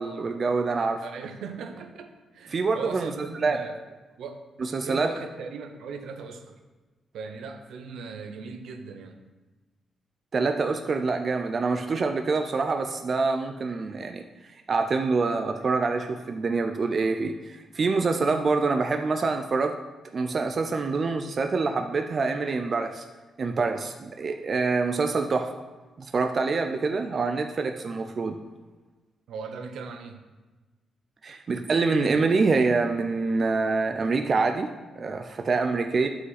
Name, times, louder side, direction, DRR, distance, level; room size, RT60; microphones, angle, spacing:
voice 1, 0.0-1.0 2.5-3.1 3.4-3.6 4.6-5.1 10.3-19.8 20.1-23.0 23.4-25.6 26.0-28.4 31.2-36.1, right 4 dB, 35° right, 5 dB, 0.4 m, -26 dB
voice 2, 1.0-3.8 4.2-4.4 4.8-6.6 7.1-9.2 29.3-30.2, right 5 dB, 75° right, 7 dB, 0.8 m, -38 dB
11.0 x 5.0 x 4.1 m, 1.2 s
wide cardioid pair, 175°, 0 cm